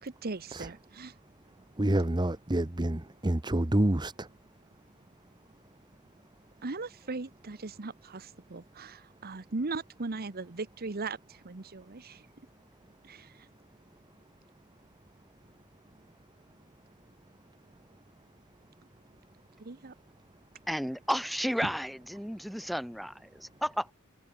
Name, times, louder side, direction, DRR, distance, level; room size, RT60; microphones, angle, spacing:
voice 1, 0.0-1.2 6.6-12.3 13.0-13.5 19.6-19.9 21.6-21.7, right 3 dB, 45° right, 1.0 m, -38 dB
voice 2, 1.8-4.3, right 1 dB, 20° right, 1.0 m, -28 dB
voice 3, 20.7-23.9, equal, ahead, 1.7 m, -33 dB
head